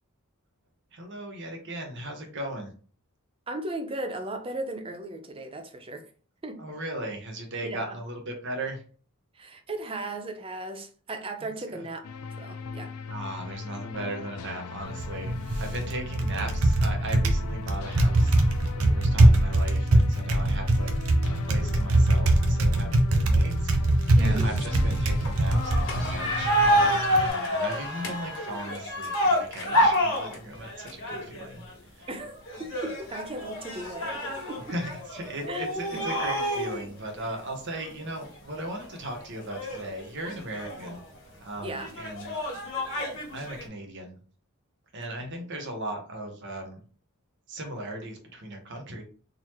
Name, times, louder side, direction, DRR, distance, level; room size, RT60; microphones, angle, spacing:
voice 1, 0.9-2.7 6.6-8.8 11.4-11.9 13.1-18.4 18.8-23.7 24.2-31.6 31.9-32.1 34.7-41.0 41.4-42.3 43.3-44.2 44.9-46.8 47.5-49.0, right 1 dB, 55° right, 1.1 m, -37 dB
voice 2, 3.5-6.0 6.4-6.6 7.6-7.8 9.4-12.1 12.4-12.9 13.8-14.1 24.2-24.6 32.1-34.2 34.5-34.6 35.5-35.7 35.9-36.0 41.6-41.9 45.0-45.1, right 2 dB, 25° right, 0.5 m, -36 dB
sound 1, 12.0-26.9, left 5 dB, 85° left, 0.4 m, -39 dB
Typing, 14.9-27.3, right 1 dB, 70° right, 0.7 m, -23 dB
sound 2, 25.2-31.7 32.5-36.9 37.5-37.6 37.8-37.9 38.6-38.9 39.4-41.0 41.8-43.6, equal, 55° left, 1.4 m, -28 dB
3.9 x 2.8 x 3.1 m
head